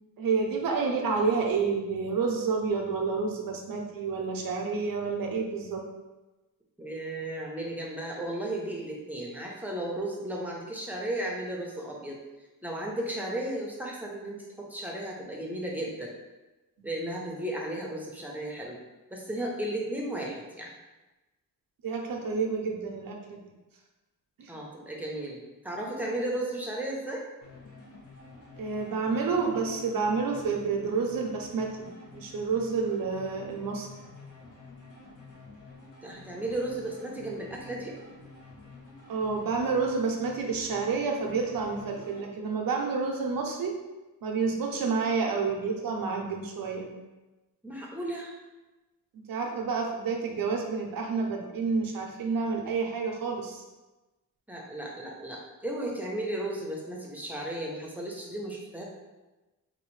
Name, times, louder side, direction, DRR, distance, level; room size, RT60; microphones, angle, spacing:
voice 1, 0.2-5.8 16.8-16.9 21.8-23.4 24.4-24.5 28.6-33.9 39.1-43.7 44.2-46.9 49.1-53.6, right 4 dB, 75° right, 2 dB, 0.7 m, -29 dB
voice 2, 6.8-12.2 12.6-16.1 16.8-18.8 19.1-20.7 24.5-27.3 29.5-29.8 36.0-37.9 47.6-48.3 54.5-58.8, right 1 dB, 5° right, -3 dB, 0.7 m, -34 dB
sound 1, 27.4-42.3, left 3 dB, 60° left, 1.1 m, -50 dB
3.9 x 2.6 x 3.1 m, 1.1 s
wide cardioid pair, 120°, 35 cm